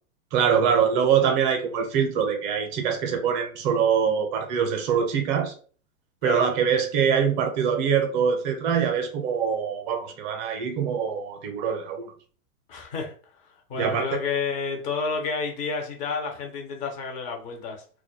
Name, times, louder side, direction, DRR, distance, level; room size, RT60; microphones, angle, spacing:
voice 1, 0.3-5.5 6.2-12.1 13.8-14.2, right 7 dB, 35° right, 0.6 m, -24 dB
voice 2, 12.7-13.1 13.4-17.8, left 5 dB, 20° left, 0.4 m, -30 dB
2.3 x 2.1 x 2.9 m
hypercardioid pair, 120°, 42 cm